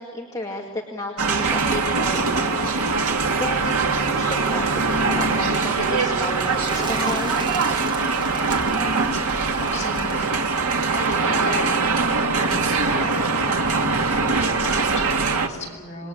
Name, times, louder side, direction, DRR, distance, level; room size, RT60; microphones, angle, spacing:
voice 1, 0.0-2.8 3.4-7.3, left 1 dB, 15° left, 0 dB, 2.2 m, -32 dB
sound 1, 1.2-15.5, right 4 dB, 90° right, 2.1 m, -22 dB
Bird, 4.1-11.7, right 2 dB, 20° right, 1.8 m, -38 dB
voice 2, 9.6-10.5 10.9-11.8 12.1-16.1, left 2 dB, 30° left, 0 dB, 7.1 m, -35 dB
27.5 x 21.5 x 8.6 m, 1.5 s
head